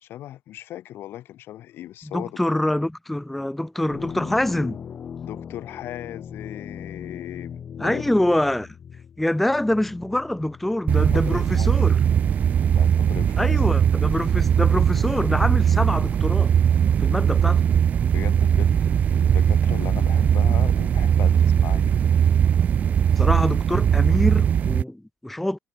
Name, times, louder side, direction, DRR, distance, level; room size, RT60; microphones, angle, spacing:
voice 1, 0.0-2.4 5.2-8.1 11.1-11.8 12.7-13.6 18.1-22.2, left 13 dB, 55° left, 2.3 m, -38 dB
voice 2, 2.1-4.8 7.8-8.7 9.2-12.0 13.4-16.5 17.0-17.6 23.1-25.6, left 1 dB, 5° left, 0.8 m, -25 dB
sound 1, 3.9-11.8 12.5-12.9, left 8 dB, 35° left, 4.0 m, -39 dB
sound 2, 10.9-24.8, right 8 dB, 35° right, 1.0 m, -19 dB
cardioid pair, 165°, 4 cm